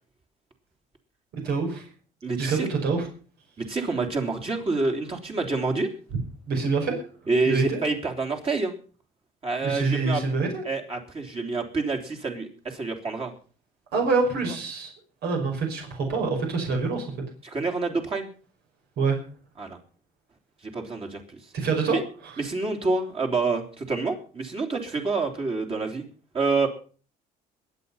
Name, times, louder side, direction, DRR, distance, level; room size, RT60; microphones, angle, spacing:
voice 1, 1.4-1.9 2.4-3.1 6.5-7.0 7.5-7.8 9.6-10.6 13.9-14.9 15.2-17.1 19.0-19.2 21.5-22.4, right 4 dB, 75° right, 2 dB, 5.4 m, -26 dB
voice 2, 2.2-2.7 3.6-5.9 7.3-8.7 9.4-10.2 10.6-13.3 17.4-18.3 19.6-19.8 20.6-21.2 21.9-22.0 22.4-26.0 26.3-26.7, right 3 dB, 35° right, 2 dB, 3.1 m, -27 dB
22.0 x 8.5 x 5.6 m, 0.40 s
cardioid pair, 110°, 17 cm